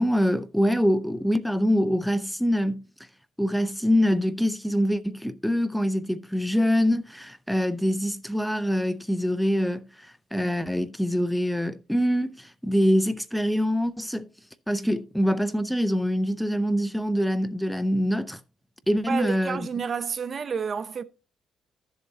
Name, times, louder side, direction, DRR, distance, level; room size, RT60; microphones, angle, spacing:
voice 1, 0.0-2.8 3.4-14.3 14.7-18.4 18.9-19.7, equal, ahead, 0.5 m, -24 dB
voice 2, 19.1-21.0, right 6 dB, 45° right, 0.7 m, -30 dB
12.5 x 7.3 x 2.8 m
cardioid pair, 90°, 0 cm